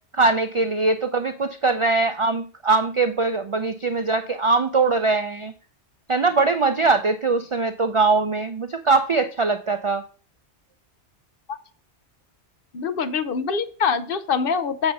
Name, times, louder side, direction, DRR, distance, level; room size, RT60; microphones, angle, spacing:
voice 1, 0.1-5.5 6.1-10.0, right 3 dB, 55° right, 9 dB, 0.3 m, -21 dB
voice 2, 12.7-14.9, left 6 dB, 60° left, 10 dB, 0.8 m, -24 dB
6.8 x 6.8 x 4.0 m, 0.41 s
omnidirectional pair, 1.2 m